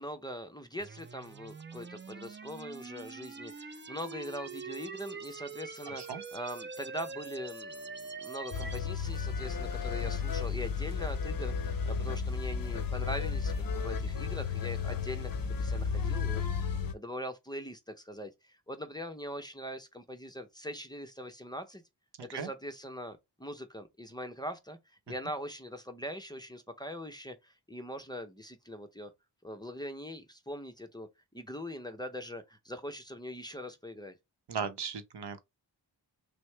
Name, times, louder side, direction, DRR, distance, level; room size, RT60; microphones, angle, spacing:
voice 1, 0.0-21.8 22.2-24.8 25.1-29.1 29.4-31.1 31.3-34.2, equal, 10° left, 0.7 m, -42 dB
sound 1, 0.8-8.8, right 4 dB, 30° right, 0.5 m, -44 dB
sound 2, 8.5-16.9, left 5 dB, 55° left, 0.6 m, -33 dB
voice 2, 34.5-35.4, right 6 dB, 70° right, 0.8 m, -36 dB
6.0 x 2.1 x 3.3 m
wide cardioid pair, 100°, 42 cm